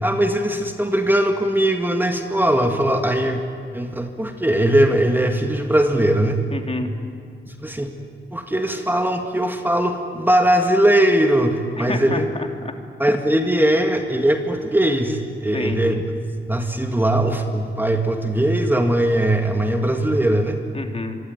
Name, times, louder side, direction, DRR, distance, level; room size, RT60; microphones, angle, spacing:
voice 1, 0.0-3.4 3.7-6.4 7.6-7.9 8.3-12.3 13.0-16.0 16.5-20.6, right 1 dB, 10° right, 4 dB, 2.1 m, -20 dB
voice 2, 6.5-6.9 11.8-12.7 15.4-15.8 20.7-21.2, left 2 dB, 30° left, 4 dB, 2.9 m, -29 dB
25.0 x 23.0 x 9.4 m, 2.2 s
cardioid pair, 75°, 21 cm